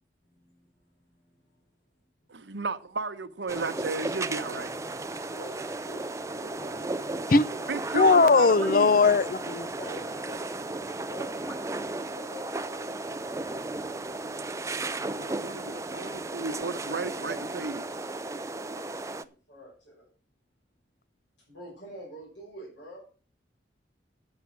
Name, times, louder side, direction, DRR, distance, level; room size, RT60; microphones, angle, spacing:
voice 1, 0.2-0.6 0.9-1.6 5.3-6.9 7.2-7.7 9.8-10.3 10.8-12.9 18.3-19.2 19.5-20.0 21.5-23.0, right 1 dB, 75° left, 6.1 m, -46 dB
voice 2, 2.3-4.7 7.7-8.9 15.2-17.9, right 3 dB, 75° right, 1.0 m, -33 dB
sound 1, 3.5-19.2, right 2 dB, 15° right, 0.4 m, -35 dB
voice 3, 7.9-9.7, left 4 dB, 45° left, 0.5 m, -20 dB
sound 2, 9.0-9.2 10.0-10.5 11.5-11.9 13.1-13.2 13.9-14.1, equal, 10° left, 1.9 m, -51 dB
9.6 x 8.2 x 6.2 m
head